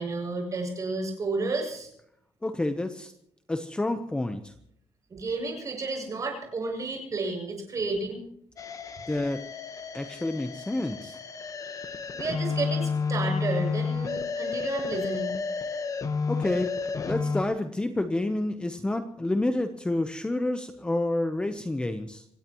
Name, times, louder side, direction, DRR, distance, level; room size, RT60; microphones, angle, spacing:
voice 1, 0.0-1.9 5.1-8.2 11.7-15.3, right 3 dB, 30° right, 2 dB, 7.2 m, -32 dB
voice 2, 2.4-3.1 3.5-4.5 9.1-9.4 9.9-11.2 16.3-16.8 17.1-22.2, left 2 dB, 10° left, 8 dB, 0.9 m, -29 dB
sound 1, 8.6-17.4, left 5 dB, 35° left, 1.3 m, -31 dB
26.0 x 17.0 x 3.1 m, 0.70 s
cardioid pair, 160°, 10 cm